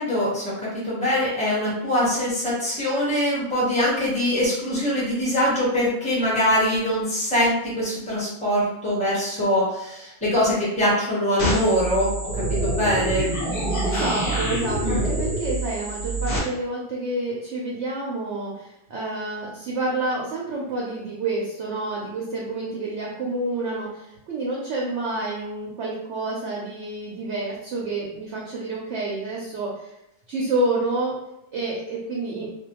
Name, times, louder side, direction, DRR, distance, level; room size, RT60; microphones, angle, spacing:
voice 1, 0.0-12.1 12.5-13.3 14.8-15.1, equal, 5° left, -7 dB, 0.7 m, -23 dB
sound 1, 11.4-16.4, right 1 dB, 55° left, 0.7 m, -26 dB
voice 2, 13.8-29.9 30.3-31.2 31.5-32.5, right 2 dB, 65° right, -3 dB, 0.7 m, -29 dB
2.6 x 2.2 x 2.8 m, 0.86 s
omnidirectional pair, 1.7 m